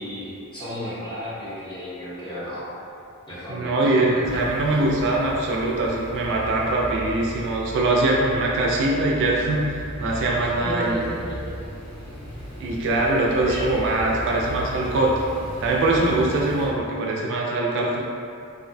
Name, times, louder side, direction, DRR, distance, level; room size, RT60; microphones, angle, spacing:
voice 1, 0.0-2.7 3.3-4.8 10.5-11.0 11.3-11.4 13.3-14.2, equal, 20° left, -11 dB, 0.7 m, -33 dB
voice 2, 3.5-11.0 12.6-15.2 15.6-18.0, right 2 dB, 55° right, -3 dB, 0.3 m, -22 dB
sound 1, 4.2-16.7, equal, 90° left, 1.1 m, -36 dB
2.6 x 2.0 x 2.5 m, 2.4 s
head